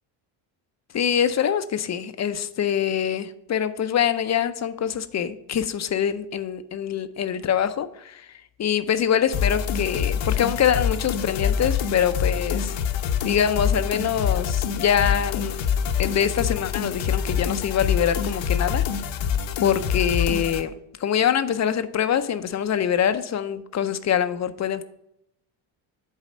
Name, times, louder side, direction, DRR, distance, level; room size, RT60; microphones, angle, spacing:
voice 1, 0.9-8.3 8.6-12.8 13.2-15.6 16.0-18.8 19.6-20.7 21.0-24.8, left 9 dB, 35° left, 12 dB, 0.5 m, -24 dB
sound 1, 9.3-20.6, left 7 dB, 65° left, 0.8 m, -25 dB
7.4 x 4.1 x 5.2 m, 0.81 s
cardioid pair, 90°, 49 cm